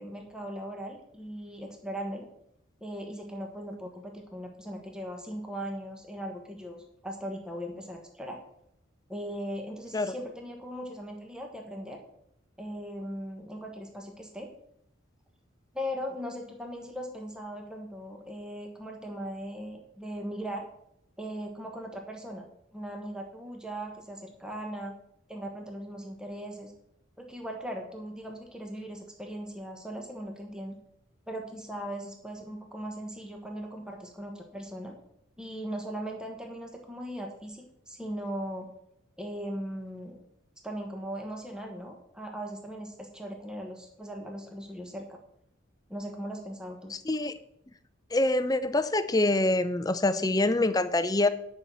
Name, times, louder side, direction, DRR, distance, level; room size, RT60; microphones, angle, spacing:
voice 1, 0.0-2.3 2.8-8.4 9.1-12.0 12.6-14.5 15.7-20.7 21.2-22.4 22.7-24.9 25.3-26.7 27.2-30.8 31.3-34.9 35.4-38.7 39.2-40.2 40.6-45.2 45.9-46.9, equal, 5° right, 2 dB, 1.1 m, -39 dB
voice 2, 46.9-47.4 48.1-51.3, left 2 dB, 20° left, 12 dB, 0.5 m, -25 dB
10.0 x 5.6 x 7.0 m, 0.75 s
head